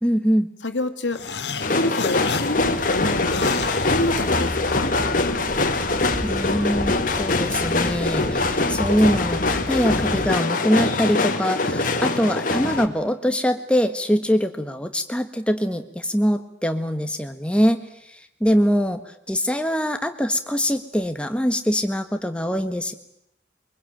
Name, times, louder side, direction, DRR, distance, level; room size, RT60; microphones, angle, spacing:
voice 1, 0.0-0.5 6.2-17.8 18.1-19.0 19.3-22.9, equal, 5° left, 7 dB, 1.5 m, -23 dB
voice 2, 0.6-1.2 1.7-3.6 3.9-4.9, left 1 dB, 90° left, 7 dB, 2.1 m, -27 dB
sound 1, 1.1-4.8, left 5 dB, 70° left, 1.6 m, -33 dB
sound 2, 1.6-12.9, left 3 dB, 45° left, 1.7 m, -23 dB
sound 3, 2.6-10.3, equal, 45° right, 6.7 m, -33 dB
23.5 x 22.0 x 8.9 m, 0.79 s
head